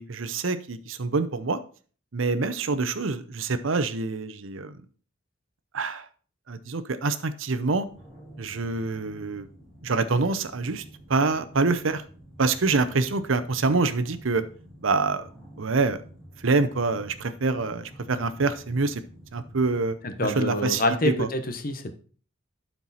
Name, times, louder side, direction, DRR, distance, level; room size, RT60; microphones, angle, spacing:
voice 1, 0.0-1.6 2.1-4.7 5.7-6.1 6.5-7.9 8.4-9.4 9.8-10.8 11.1-12.0 12.4-14.4 14.8-15.3 15.6-16.0 16.4-19.0 19.3-21.3, right 3 dB, 80° right, 12 dB, 0.7 m, -26 dB
sound 1, 7.8-19.9, right 1 dB, 5° left, 3.5 m, -49 dB
voice 2, 20.0-21.9, left 1 dB, 45° left, 8 dB, 1.0 m, -26 dB
12.0 x 4.6 x 4.2 m, 0.41 s
head